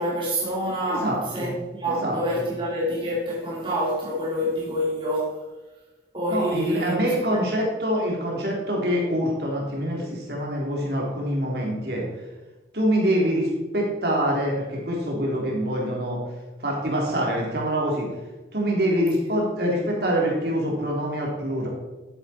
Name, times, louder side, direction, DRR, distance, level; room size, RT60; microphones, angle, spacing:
voice 1, 0.0-5.3 6.1-6.9 7.3-7.4, equal, 25° right, -6 dB, 3.0 m, -27 dB
voice 2, 0.8-1.5 1.9-2.4 6.3-12.0 12.7-16.2 16.6-18.1 18.5-21.7, equal, 60° right, -2 dB, 3.4 m, -25 dB
12.0 x 10.0 x 4.4 m, 1.1 s
head